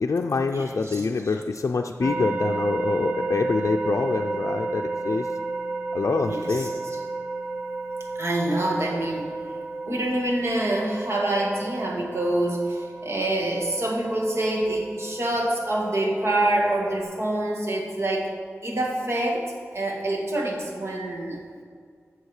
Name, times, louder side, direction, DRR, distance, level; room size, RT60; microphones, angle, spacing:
voice 1, 0.0-5.3 5.9-6.7, left 4 dB, 65° left, 2 dB, 0.5 m, -26 dB
voice 2, 0.5-1.0 6.2-6.7 8.2-9.3 9.8-18.3 18.6-19.5 19.7-21.4, right 1 dB, 55° right, -1 dB, 2.3 m, -26 dB
sound 1, 2.0-17.0, right 3 dB, 35° right, 2.0 m, -32 dB
11.0 x 7.3 x 6.5 m, 2.1 s
wide cardioid pair, 70°, 5 cm